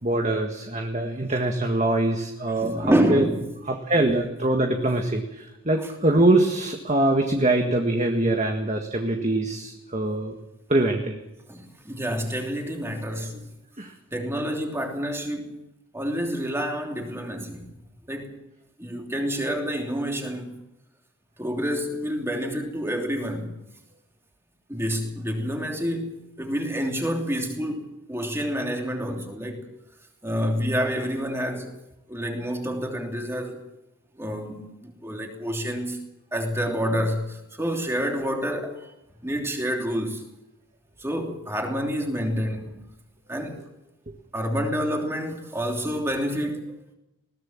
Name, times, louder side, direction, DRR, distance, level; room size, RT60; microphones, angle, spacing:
voice 1, 0.0-3.3 3.6-10.3 10.7-11.2 13.3-13.4 13.8-13.9, right 2 dB, 30° right, 1.7 m, -23 dB
voice 2, 2.6-3.5 11.5-13.4 14.1-15.5 15.9-17.7 18.1-18.4 18.8-20.6 21.4-23.6 24.7-29.6 30.2-31.7 32.1-33.6 34.2-36.0 36.3-38.8 39.2-40.2 41.0-42.8 43.3-43.6 44.3-46.7, equal, 10° right, 3.0 m, -28 dB
21.0 x 18.0 x 7.3 m
head